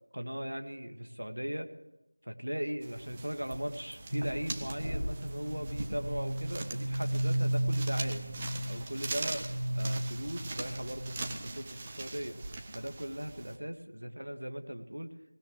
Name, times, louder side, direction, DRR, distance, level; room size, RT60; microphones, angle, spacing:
voice 1, 0.1-1.7 2.2-8.2 8.7-9.5 9.7-12.4 12.7-15.1, equal, 65° right, 6 dB, 2.0 m, -38 dB
sound 1, 2.8-13.6, right 3 dB, 10° right, 0.6 m, -42 dB
sound 2, 4.1-11.6, right 1 dB, 40° right, 5.1 m, -34 dB
22.5 x 19.0 x 3.3 m, 0.93 s
figure-of-eight pair, 175°, 0 cm